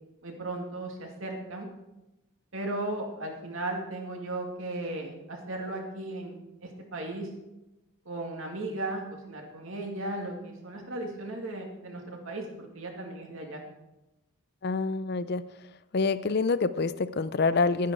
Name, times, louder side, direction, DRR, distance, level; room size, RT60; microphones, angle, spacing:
voice 1, 0.2-1.7 2.5-6.4 6.6-7.3 8.1-13.6, right 2 dB, 65° right, 2 dB, 2.4 m, -36 dB
voice 2, 14.6-15.4 15.9-17.9, left 4 dB, 45° left, 15 dB, 0.5 m, -26 dB
12.5 x 10.0 x 4.7 m, 0.98 s
head